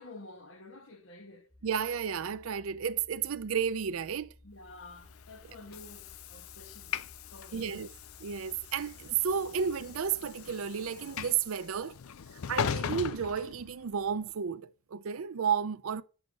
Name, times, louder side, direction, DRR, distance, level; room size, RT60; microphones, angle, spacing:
voice 1, 0.0-1.5 4.4-7.0 7.3-7.9, left 2 dB, 70° left, 1.4 m, -50 dB
sound 1, 1.5-10.2, left 1 dB, 5° right, 0.7 m, -58 dB
voice 2, 1.6-4.3 7.5-7.9 8.2-11.9 12.3-16.0, right 7 dB, 80° right, 0.5 m, -32 dB
Train / Sliding door, 4.9-14.2, left 7 dB, 90° left, 0.5 m, -40 dB
7.9 x 6.4 x 5.4 m
head